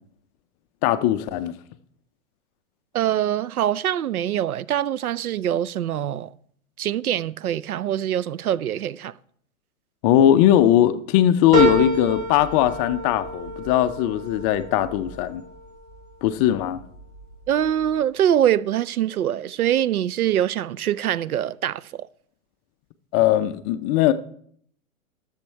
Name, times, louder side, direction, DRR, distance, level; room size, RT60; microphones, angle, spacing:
voice 1, 0.8-1.5 10.0-15.4 16.2-16.8 23.1-24.1, left 12 dB, 25° left, 0.5 m, -19 dB
voice 2, 2.9-6.3 6.8-9.1 17.5-22.1, right 11 dB, 90° right, 0.6 m, -24 dB
sound 1, 11.5-16.3 16.8-17.5 17.8-17.9, right 2 dB, 35° right, 4.9 m, -28 dB
13.5 x 7.3 x 4.5 m
hypercardioid pair, 125°, 42 cm